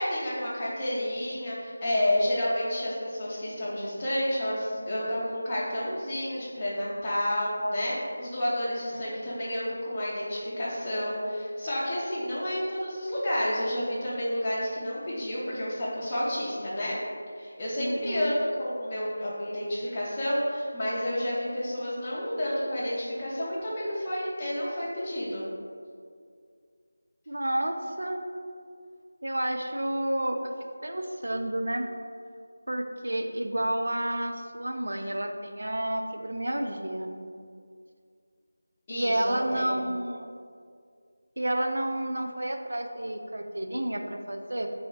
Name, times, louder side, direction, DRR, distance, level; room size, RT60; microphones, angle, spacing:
voice 1, 0.0-17.0 17.3-25.4 38.9-39.8, left 1 dB, 20° left, -10 dB, 0.6 m, -30 dB
voice 2, 8.9-9.3 17.8-18.4 27.3-28.2 29.2-30.5 30.8-31.9 32.7-37.2 38.9-40.3 41.4-44.7, right 1 dB, 80° right, 4 dB, 0.4 m, -30 dB
2.8 x 2.7 x 3.9 m, 2.2 s
figure-of-eight pair, 170°, 0 cm